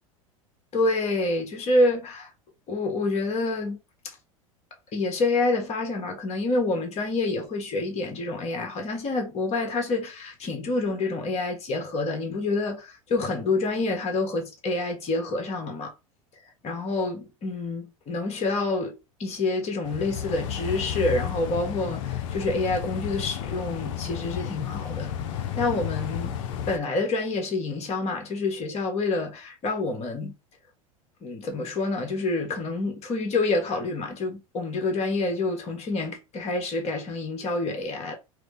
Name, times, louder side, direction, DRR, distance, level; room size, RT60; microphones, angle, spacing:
voice 1, 0.7-2.3 2.7-3.8 4.0-4.1 4.9-15.9 16.6-25.1 25.5-26.4 26.7-30.3 31.2-38.2, left 2 dB, 35° left, 1.5 m, -27 dB
sound 1, 19.8-26.8, left 9 dB, 60° left, 0.7 m, -32 dB
4.7 x 2.2 x 3.4 m
figure-of-eight pair, 80°, 18 cm